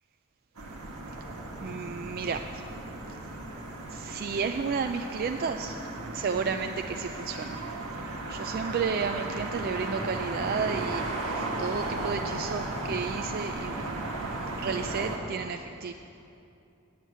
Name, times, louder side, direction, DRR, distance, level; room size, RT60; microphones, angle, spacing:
sound 1, 0.6-15.2, right 2 dB, 90° right, 1.4 m, -35 dB
voice 1, 1.6-2.6 3.9-5.8 6.1-7.6 8.3-14.1 14.4-15.9, right 5 dB, 45° right, 6 dB, 0.3 m, -32 dB
9.4 x 7.3 x 8.3 m, 2.7 s
head